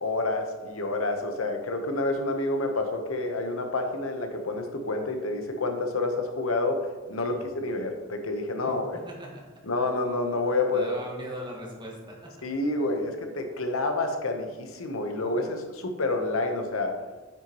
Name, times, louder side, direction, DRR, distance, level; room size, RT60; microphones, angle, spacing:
voice 1, 0.0-9.0 9.7-10.9 12.4-17.0, left 2 dB, 90° left, 5 dB, 1.0 m, -28 dB
voice 2, 8.9-9.5 10.7-12.4, equal, 20° right, -1 dB, 1.4 m, -40 dB
9.1 x 6.1 x 3.0 m, 1.2 s
head